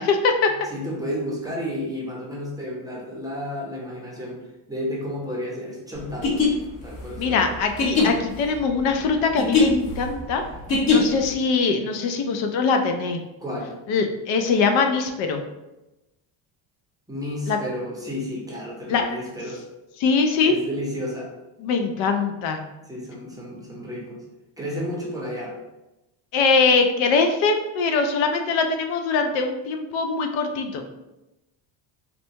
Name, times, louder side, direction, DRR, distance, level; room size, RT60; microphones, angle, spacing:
voice 1, 0.0-0.5 7.2-10.4 10.9-13.2 13.9-15.4 17.5-17.6 18.9-19.2 20.0-20.5 21.6-22.6 26.3-30.8, left 4 dB, 70° left, 5 dB, 0.6 m, -22 dB
voice 2, 0.6-6.5 6.8-7.5 13.4-13.8 17.1-19.7 20.5-21.3 22.9-24.2 24.6-25.5, equal, 10° right, -4 dB, 0.6 m, -32 dB
sound 1, 6.1-11.3, left 4 dB, 50° left, 1.1 m, -22 dB
4.1 x 2.2 x 2.6 m, 0.98 s
cardioid pair, 130°, 47 cm